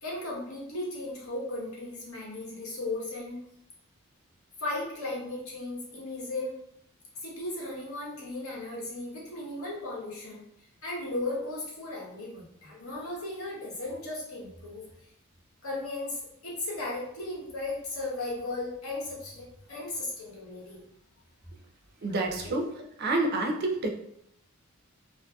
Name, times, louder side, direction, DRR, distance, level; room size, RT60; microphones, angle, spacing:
voice 1, 0.0-3.4 4.6-6.5 7.2-10.4 10.8-14.8 15.6-20.8 22.1-22.2, left 2 dB, 75° left, -5 dB, 1.0 m, -36 dB
voice 2, 22.0-22.7 23.0-23.9, right 2 dB, 50° right, 2 dB, 0.4 m, -28 dB
2.6 x 2.6 x 2.2 m, 0.73 s
head